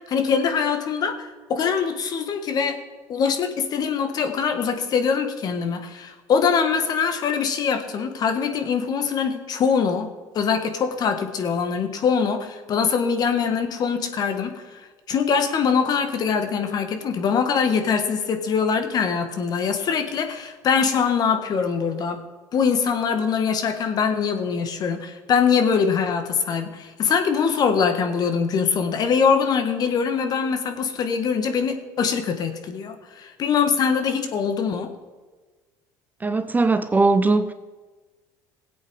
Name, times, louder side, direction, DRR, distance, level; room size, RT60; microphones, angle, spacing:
voice 1, 0.1-2.8 3.1-10.1 10.3-14.5 15.1-22.2 22.5-34.9, left 6 dB, 45° left, 1.6 m, -23 dB
voice 2, 36.2-37.5, right 3 dB, 20° right, 0.7 m, -19 dB
17.5 x 8.2 x 4.8 m
supercardioid pair, 85°, 9 cm